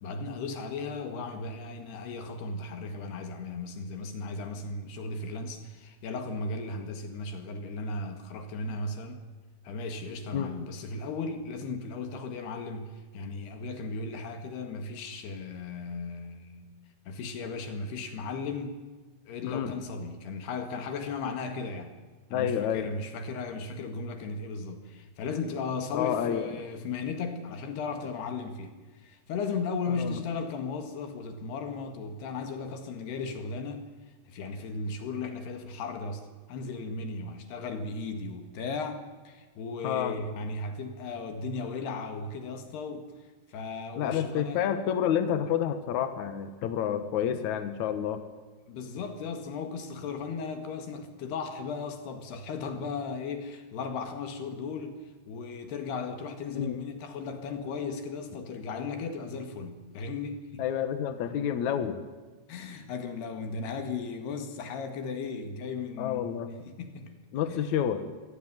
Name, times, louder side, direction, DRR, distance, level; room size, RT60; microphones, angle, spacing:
voice 1, 0.0-9.2 9.6-16.7 17.1-18.8 19.3-22.0 22.3-33.9 34.3-43.1 43.5-44.6 48.7-60.6 62.5-67.1 67.5-67.6, left 4 dB, 65° left, 3.6 m, -36 dB
voice 2, 22.3-22.9 25.9-26.5 29.9-30.2 39.8-40.1 44.0-48.2 56.5-56.8 60.6-62.0 66.0-66.5 67.3-68.0, left 9 dB, 80° left, 1.6 m, -29 dB
24.0 x 18.0 x 9.2 m
omnidirectional pair, 5.5 m